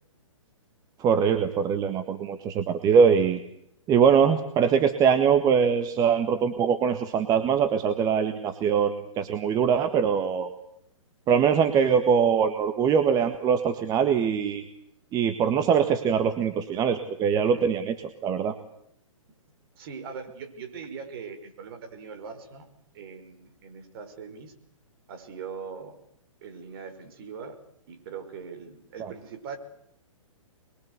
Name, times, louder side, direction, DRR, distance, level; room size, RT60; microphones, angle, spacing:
voice 1, 1.0-3.4 3.9-10.5 11.3-14.6 15.1-18.0 18.2-18.6 29.0-29.1, right 7 dB, 20° right, 8 dB, 1.7 m, -22 dB
voice 2, 19.8-22.7 22.9-24.5 25.1-26.0 26.4-27.6 27.9-29.6, right 6 dB, 45° right, 6 dB, 5.5 m, -41 dB
27.0 x 22.0 x 8.2 m, 0.73 s
hypercardioid pair, 130°, 17 cm